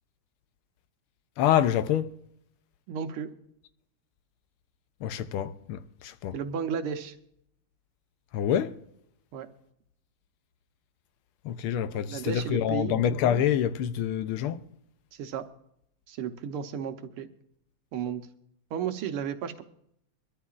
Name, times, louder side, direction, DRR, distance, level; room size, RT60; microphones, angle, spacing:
voice 1, 1.4-2.1 5.0-6.3 8.3-8.7 11.4-14.6, left 10 dB, 80° left, 1.5 m, -26 dB
voice 2, 2.9-3.3 6.3-7.2 9.3-9.5 11.9-13.0 15.1-15.5 16.1-17.3 17.9-18.3 18.7-19.6, right 8 dB, 80° right, 1.8 m, -33 dB
23.5 x 13.5 x 2.5 m
omnidirectional pair, 2.4 m